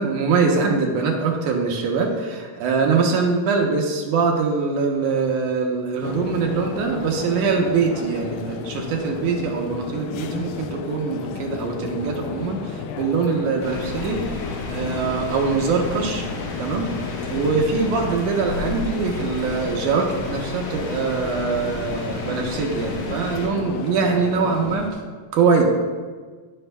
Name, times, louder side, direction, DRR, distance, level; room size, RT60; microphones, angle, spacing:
voice 1, 0.0-16.2 16.6-16.9 17.3-25.0 25.3-25.6, right 4 dB, 70° right, 1 dB, 2.2 m, -23 dB
sound 1, 6.0-24.9, left 7 dB, 80° left, 1.9 m, -33 dB
sound 2, 13.6-23.5, left 1 dB, 60° left, 1.8 m, -33 dB
16.0 x 5.6 x 2.2 m, 1.5 s
omnidirectional pair, 4.0 m